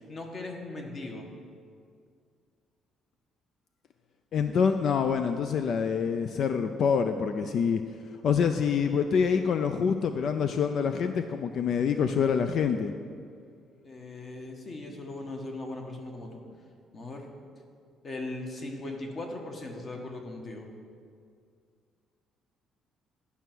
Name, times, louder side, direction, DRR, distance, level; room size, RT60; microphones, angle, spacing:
voice 1, 0.1-1.3 13.8-16.4 16.9-17.3 18.0-20.7, left 2 dB, 35° left, 2 dB, 1.3 m, -39 dB
voice 2, 4.3-7.8 8.2-12.9, left 6 dB, 55° left, 8 dB, 0.4 m, -26 dB
11.0 x 5.6 x 6.1 m, 2.2 s
cardioid pair, 130°, 0 cm